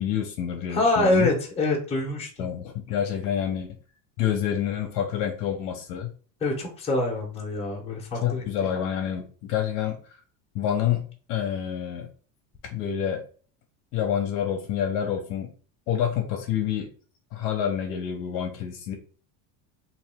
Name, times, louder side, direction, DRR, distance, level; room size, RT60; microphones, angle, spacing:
voice 1, 0.0-1.3 2.4-3.8 4.2-6.1 8.2-10.0 10.5-12.1 12.7-13.2 13.9-15.5 15.9-16.9 17.3-18.9, left 9 dB, 55° left, 2 dB, 0.9 m, -28 dB
voice 2, 0.7-2.3 6.4-8.5, left 2 dB, 15° left, -2 dB, 1.0 m, -25 dB
3.5 x 2.7 x 3.5 m, 0.40 s
cardioid pair, 155°, 39 cm